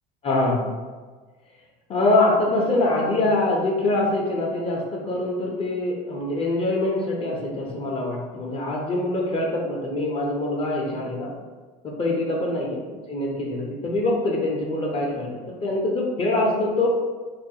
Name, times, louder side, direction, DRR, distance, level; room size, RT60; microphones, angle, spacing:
voice 1, 0.2-0.7 1.9-11.3 11.8-16.9, left 2 dB, 30° left, -2 dB, 0.5 m, -24 dB
2.3 x 2.1 x 2.7 m, 1.4 s
supercardioid pair, 105°, 20 cm